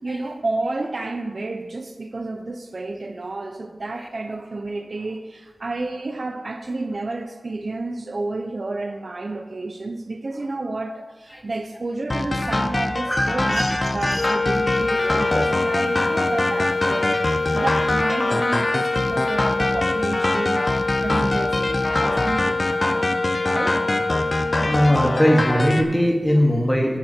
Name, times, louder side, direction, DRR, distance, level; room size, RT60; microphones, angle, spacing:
voice 1, 0.0-20.6 21.0-23.2 23.4-23.8, right 2 dB, 55° right, 6 dB, 1.0 m, -31 dB
sound 1, 12.1-25.8, left 1 dB, 35° left, 1.0 m, -24 dB
voice 2, 13.1-14.6 15.0-15.1 17.5-17.9 24.6-27.0, equal, 10° left, 1 dB, 2.3 m, -21 dB
sound 2, 14.1-25.0, left 3 dB, 50° left, 0.4 m, -25 dB
13.0 x 11.5 x 4.6 m, 1.3 s
wide cardioid pair, 70°, 0 cm